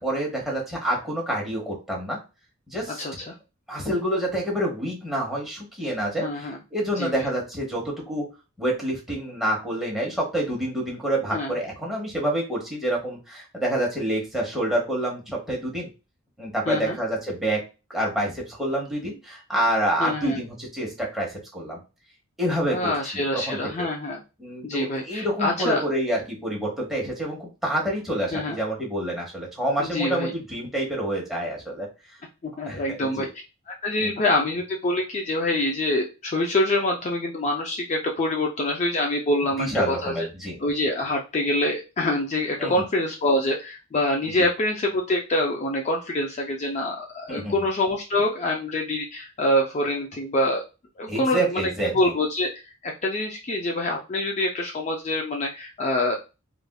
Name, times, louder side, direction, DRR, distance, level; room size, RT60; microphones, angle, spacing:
voice 1, 0.0-2.2 2.7-3.0 3.7-8.3 8.6-15.9 16.4-17.6 17.9-21.8 22.4-23.6 24.4-31.9 32.6-33.3 34.0-34.1 39.6-40.6 42.6-42.8 44.2-44.3 47.3-47.5 51.1-51.9, right 1 dB, ahead, -3 dB, 1.0 m, -27 dB
voice 2, 2.9-3.3 6.2-6.6 7.0-7.2 11.3-11.5 16.7-17.0 20.0-20.4 22.7-24.2 24.6-25.8 28.3-28.6 29.8-30.3 32.4-33.3 33.7-40.3 40.6-50.6 51.0-56.2, left 1 dB, 35° left, 1 dB, 0.4 m, -25 dB
3.3 x 2.5 x 2.2 m, 0.29 s
head